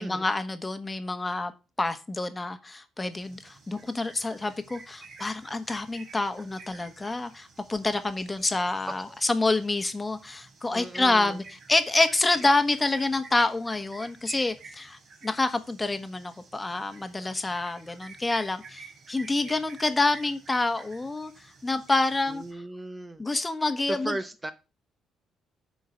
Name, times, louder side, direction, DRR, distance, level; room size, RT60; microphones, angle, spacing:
voice 1, 0.0-1.5 1.8-11.4 11.7-22.4 23.2-24.1, left 2 dB, 20° left, 1.3 m, -27 dB
sound 1, 3.1-22.5, right 4 dB, 60° right, 3.1 m, -50 dB
voice 2, 8.7-9.2 10.7-11.4 22.3-23.2 23.9-24.5, right 2 dB, 20° right, 0.8 m, -36 dB
8.1 x 4.7 x 6.9 m
cardioid pair, 85°, 0 cm